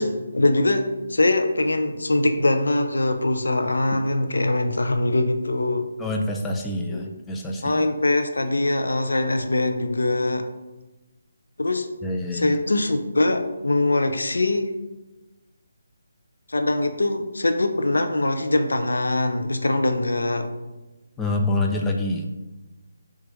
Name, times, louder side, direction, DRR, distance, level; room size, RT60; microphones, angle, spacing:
voice 1, 0.0-5.9 6.9-7.1 7.6-10.5 11.6-11.9 12.3-14.7 16.5-20.5, left 2 dB, 75° left, 7 dB, 0.4 m, -22 dB
voice 2, 6.0-7.9 12.0-12.6 21.2-22.3, left 2 dB, 10° left, 1 dB, 0.4 m, -26 dB
6.0 x 2.4 x 3.0 m, 1.1 s
figure-of-eight pair, 150°, 0 cm